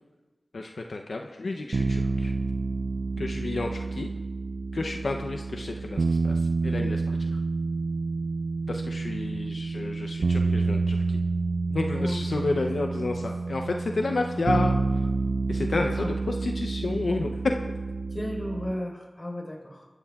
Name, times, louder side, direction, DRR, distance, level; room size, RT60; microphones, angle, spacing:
voice 1, 0.5-2.3 3.2-4.1 4.7-7.4 8.7-11.2 11.7-14.8 15.5-17.3, left 2 dB, 85° left, 3 dB, 0.7 m, -31 dB
sound 1, 1.7-18.7, right 3 dB, 85° right, 0.3 m, -28 dB
voice 2, 11.9-12.5 16.0-16.1 18.1-19.9, left 1 dB, 35° left, -1 dB, 4.4 m, -34 dB
23.5 x 13.0 x 2.4 m, 1.3 s
wide cardioid pair, 55°, 0 cm